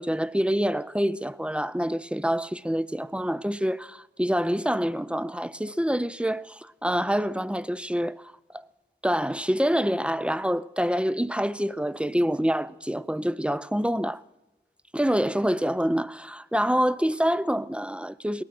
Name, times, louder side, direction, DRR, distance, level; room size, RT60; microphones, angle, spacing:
voice 1, 0.0-8.6 9.0-14.2 14.9-18.4, equal, 5° right, 0.5 m, -26 dB
19.0 x 12.5 x 6.0 m
wide cardioid pair, 75°, 19 cm